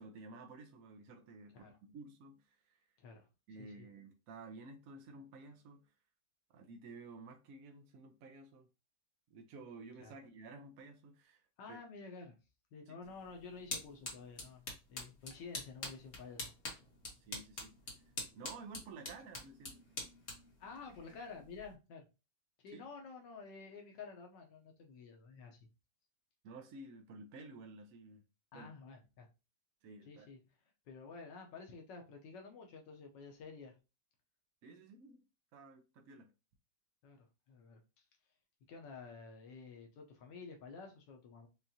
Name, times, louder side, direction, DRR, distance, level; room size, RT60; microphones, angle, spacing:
voice 1, 0.0-2.9 3.5-5.9 6.5-8.7 9.3-11.8 12.9-13.0 17.2-17.7 18.3-19.8 22.7-22.9 26.4-28.2 28.5-28.7 29.8-30.3 34.6-35.2 35.5-36.3, right 3 dB, 65° right, 0.9 m, -53 dB
voice 2, 3.6-3.9 10.0-10.1 11.6-12.4 12.7-16.8 20.6-22.1 22.6-25.6 28.5-29.3 30.0-30.4 30.9-33.8 37.0-38.0 38.7-41.5, left 4 dB, 85° left, 1.4 m, -51 dB
sound 1, 13.0-21.7, left 2 dB, 40° left, 1.4 m, -47 dB
5.5 x 2.4 x 2.7 m
omnidirectional pair, 1.9 m